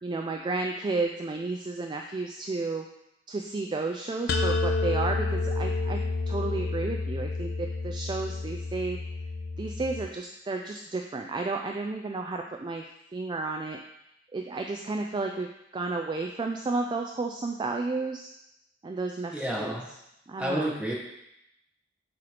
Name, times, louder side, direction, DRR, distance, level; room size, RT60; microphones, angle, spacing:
voice 1, 0.0-2.8 3.3-6.0 6.3-9.0 9.6-12.8 13.1-13.8 14.3-18.3 18.8-19.8 20.3-20.8, right 3 dB, 25° right, 3 dB, 0.3 m, -32 dB
sound 1, 4.3-10.1, left 3 dB, 55° left, 0.5 m, -30 dB
voice 2, 19.3-19.9 20.4-20.9, right 1 dB, 5° right, -3 dB, 1.1 m, -30 dB
7.7 x 3.0 x 4.9 m, 0.83 s
head